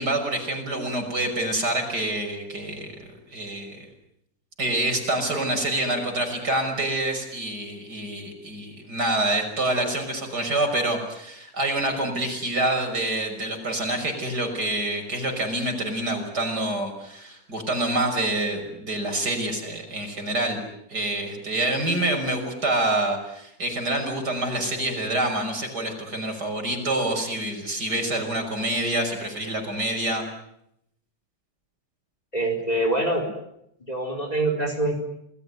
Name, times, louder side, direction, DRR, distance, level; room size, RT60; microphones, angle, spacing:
voice 1, 0.0-2.9 3.3-3.8 4.6-20.6 20.9-30.3, right 1 dB, 50° right, 4 dB, 6.4 m, -27 dB
voice 2, 32.3-33.3 33.9-34.9, right 2 dB, 15° left, 4 dB, 4.4 m, -24 dB
29.5 x 20.5 x 9.6 m, 0.78 s
omnidirectional pair, 2.3 m